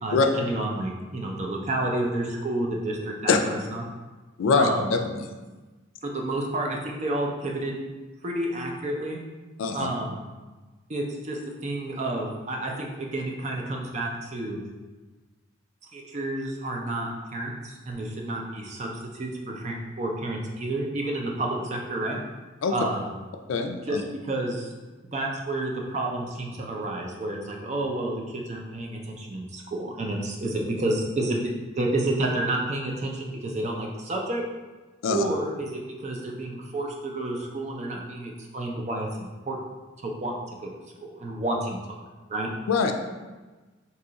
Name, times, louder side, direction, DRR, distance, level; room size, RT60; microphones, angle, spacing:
voice 1, 0.0-3.8 4.5-4.9 6.0-7.7 8.2-9.2 9.7-10.2 10.9-14.6 15.9-22.2 22.7-23.1 23.9-24.0 24.2-24.7 25.1-31.4 31.8-34.4 35.1-39.6 40.0-40.3 40.6-40.7 41.0-41.8 42.3-42.5, right 2 dB, 35° right, 0 dB, 0.4 m, -30 dB
voice 2, 4.4-5.3 9.6-9.9 22.6-22.8 23.5-24.0 35.0-35.2 42.7-42.9, left 4 dB, 75° left, 4 dB, 0.3 m, -23 dB
2.8 x 2.3 x 3.8 m, 1.2 s
head